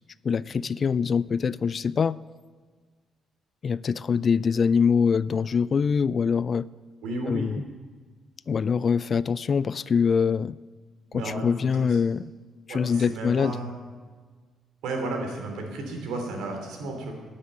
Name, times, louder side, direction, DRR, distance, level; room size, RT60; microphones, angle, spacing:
voice 1, 0.2-2.2 3.6-6.7 7.3-7.6 8.5-10.6 11.1-12.3 12.7-13.5, left 6 dB, 45° left, 0.3 m, -24 dB
voice 2, 7.0-7.5 11.1-12.0 12.7-13.7 14.8-17.1, right 2 dB, 85° right, 3.1 m, -33 dB
9.9 x 9.7 x 8.7 m
cardioid pair, 90°, 0 cm